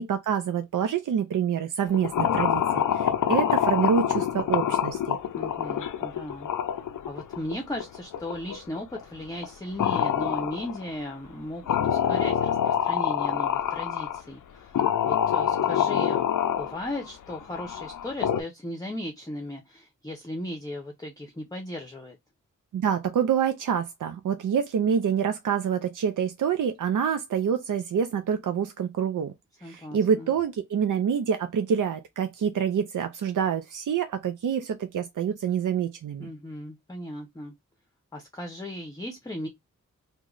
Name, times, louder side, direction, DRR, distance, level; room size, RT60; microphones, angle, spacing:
voice 1, 0.0-5.2 22.7-29.3 29.6-36.3, right 7 dB, 80° right, 0.5 m, -26 dB
sound 1, 1.9-9.0 9.4-9.5 9.8-10.9 11.7-14.2 14.7-18.4, left 9 dB, 80° left, 0.5 m, -26 dB
voice 2, 5.3-6.5 7.1-16.3 16.6-22.2 29.6-30.3 36.2-37.5 38.1-39.5, left 1 dB, 10° left, 0.6 m, -37 dB
3.0 x 2.2 x 3.7 m
wide cardioid pair, 125°, 31 cm